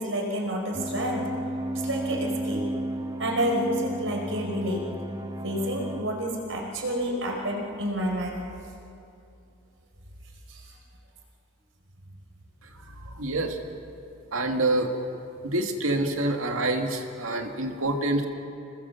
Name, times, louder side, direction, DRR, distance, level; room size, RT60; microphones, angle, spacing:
voice 1, 0.0-1.3 1.7-2.7 3.2-4.8 5.4-8.4 10.5-10.6, equal, 65° right, 1 dB, 5.1 m, -29 dB
sound 1, 0.7-6.0, right 1 dB, 15° right, 1.1 m, -33 dB
voice 2, 13.1-13.6 14.3-14.9 15.4-18.2, right 2 dB, 85° right, 4 dB, 2.3 m, -26 dB
28.0 x 21.0 x 7.2 m, 2.6 s
head